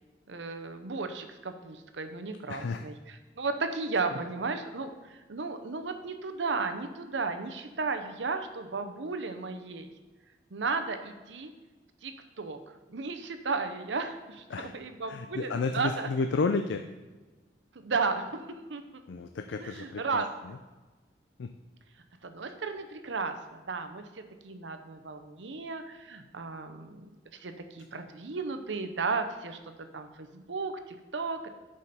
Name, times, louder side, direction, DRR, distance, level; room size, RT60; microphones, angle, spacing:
voice 1, 0.3-9.9 10.5-11.5 12.0-12.6 12.9-16.1 17.7-18.4 18.7-19.0 19.6-20.3 22.2-29.6 29.9-31.5, right 4 dB, 90° right, 8 dB, 0.8 m, -34 dB
voice 2, 2.5-2.8 14.5-14.7 15.0-16.8 19.1-20.6 21.4-21.5, left 4 dB, 90° left, 7 dB, 0.4 m, -32 dB
10.5 x 5.0 x 4.2 m, 1.2 s
head